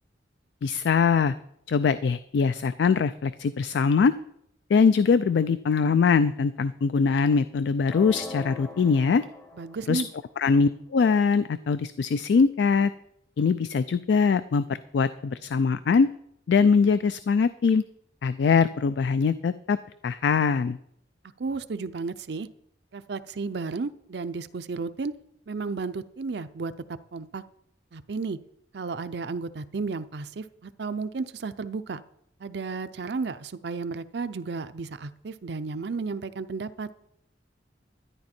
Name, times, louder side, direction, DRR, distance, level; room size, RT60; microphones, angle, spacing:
voice 1, 0.6-1.3 1.7-4.1 4.7-9.2 9.9-10.0 10.4-12.9 13.4-16.1 16.5-17.8 18.2-19.8 20.0-20.8, left 5 dB, 65° left, 14 dB, 0.3 m, -22 dB
sound 1, 7.8-9.9, left 3 dB, 10° left, 0.7 m, -41 dB
voice 2, 9.6-10.1 21.4-22.5 22.9-25.1 25.5-27.4 27.9-28.4 28.7-32.0 32.4-36.9, right 4 dB, 65° right, 12 dB, 0.5 m, -33 dB
12.0 x 10.5 x 4.3 m, 0.75 s
head